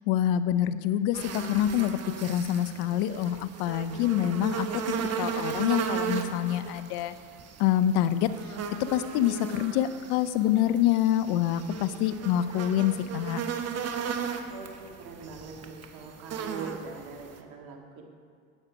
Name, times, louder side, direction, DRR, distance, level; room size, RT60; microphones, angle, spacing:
voice 1, 0.1-4.7 5.2-7.1 7.6-8.3 8.8-13.4, left 11 dB, 70° left, 13 dB, 0.7 m, -26 dB
sound 1, 1.1-17.4, right 7 dB, 40° right, 1.1 m, -36 dB
voice 2, 14.5-18.0, right 5 dB, 60° right, 2 dB, 2.1 m, -42 dB
10.5 x 9.0 x 5.0 m, 2.2 s
supercardioid pair, 85°, 40 cm